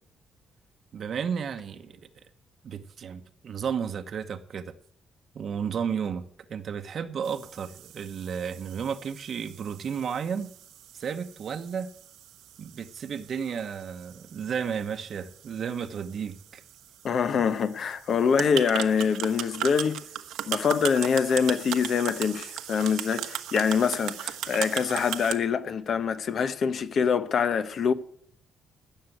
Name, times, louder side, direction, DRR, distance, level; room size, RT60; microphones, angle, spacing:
voice 1, 0.9-2.0 2.6-4.7 5.3-6.2 6.5-10.5 10.9-11.9 12.6-16.6, right 7 dB, 55° right, 0.9 m, -33 dB
sound 1, 7.2-25.3, right 12 dB, 90° right, 1.0 m, -38 dB
voice 2, 17.0-20.0 20.5-27.9, left 6 dB, 55° left, 1.0 m, -25 dB
15.5 x 6.6 x 9.2 m
cardioid pair, 90°, 0 cm